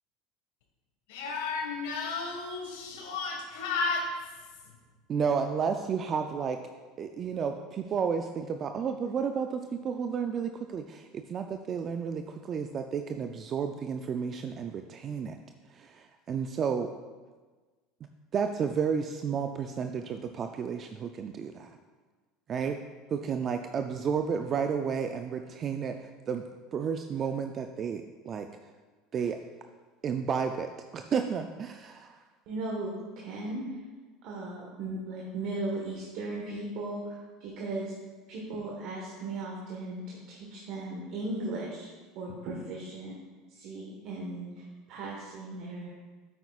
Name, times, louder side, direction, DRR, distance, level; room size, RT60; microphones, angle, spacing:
voice 1, 1.1-4.8, left 4 dB, 85° left, 2 dB, 1.6 m, -33 dB
voice 2, 5.1-6.6 7.0-15.4 15.7-16.9 18.3-21.7 22.5-22.8 23.1-26.4 26.7-28.5 29.1-29.4 30.0-32.2, right 6 dB, 35° right, 6 dB, 0.4 m, -32 dB
voice 3, 32.5-32.9 33.1-33.8 34.2-37.9 38.3-41.9 42.1-43.2 43.5-45.9, right 2 dB, 60° right, -3 dB, 1.4 m, -37 dB
8.7 x 8.1 x 2.4 m, 1.3 s
supercardioid pair, 110°, 0 cm